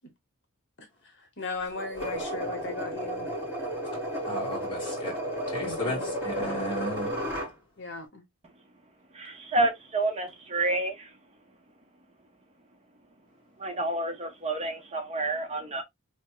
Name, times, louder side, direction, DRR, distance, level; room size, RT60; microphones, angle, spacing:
voice 1, 1.4-3.3 5.6-6.0 7.8-8.2, left 3 dB, 55° left, 1.1 m, -37 dB
sound 1, 1.7-7.5, equal, 10° right, 2.6 m, -33 dB
voice 2, 4.3-5.2 5.5-7.2, left 1 dB, 25° left, 1.9 m, -34 dB
voice 3, 9.2-11.1 13.6-15.8, right 2 dB, 30° right, 0.7 m, -29 dB
3.5 x 3.1 x 3.0 m
head